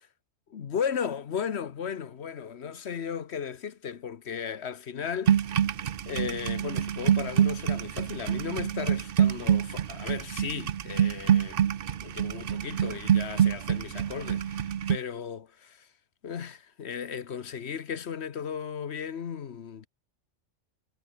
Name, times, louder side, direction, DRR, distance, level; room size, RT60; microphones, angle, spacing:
voice 1, 0.5-5.4 6.1-11.6 12.0-15.9 16.2-19.9, left 7 dB, 60° left, 1.2 m, -35 dB
sound 1, 5.3-15.0, right 9 dB, 55° right, 0.8 m, -26 dB
omnidirectional pair, 1.3 m